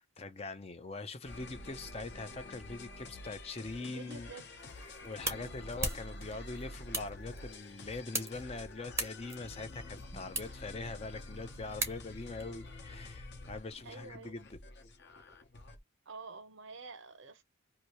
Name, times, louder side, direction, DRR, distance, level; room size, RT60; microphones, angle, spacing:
voice 1, 0.0-4.3 5.0-14.6, left 3 dB, 30° left, 0.5 m, -43 dB
sound 1, 1.2-15.8, left 2 dB, 50° left, 0.9 m, -48 dB
voice 2, 3.8-4.4 5.2-5.7 13.8-14.4 16.1-17.4, right 4 dB, 55° right, 0.6 m, -49 dB
sound 2, 4.6-12.4, right 3 dB, 15° right, 0.6 m, -41 dB
2.9 x 2.7 x 2.9 m
head